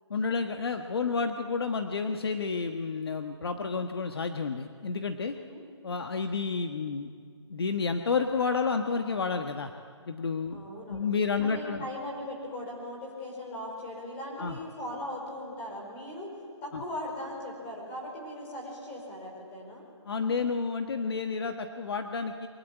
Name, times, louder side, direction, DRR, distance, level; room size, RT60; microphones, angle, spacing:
voice 1, 0.1-5.3 5.8-7.1 7.5-9.7 10.1-10.6 10.9-11.9 14.4-14.6 16.7-16.8 20.0-22.5, left 5 dB, 55° left, 6 dB, 1.3 m, -30 dB
voice 2, 5.3-5.6 10.5-11.1 11.4-16.3 16.6-19.8, left 1 dB, 15° left, -2 dB, 4.6 m, -39 dB
23.5 x 21.0 x 9.0 m, 2.1 s
hypercardioid pair, 175°, 15 cm